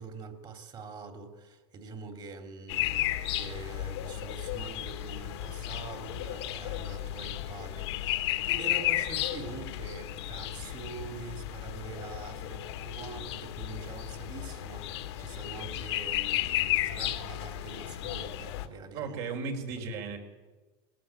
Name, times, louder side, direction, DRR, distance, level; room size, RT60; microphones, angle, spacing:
voice 1, 0.0-19.2 19.8-20.2, right 4 dB, 35° right, 6 dB, 3.0 m, -45 dB
sound 1, 2.7-18.7, left 14 dB, 80° left, 1.8 m, -34 dB
voice 2, 18.9-20.2, right 4 dB, 60° right, 5 dB, 4.7 m, -35 dB
20.0 x 17.5 x 8.8 m, 1.3 s
supercardioid pair, 125°, 14 cm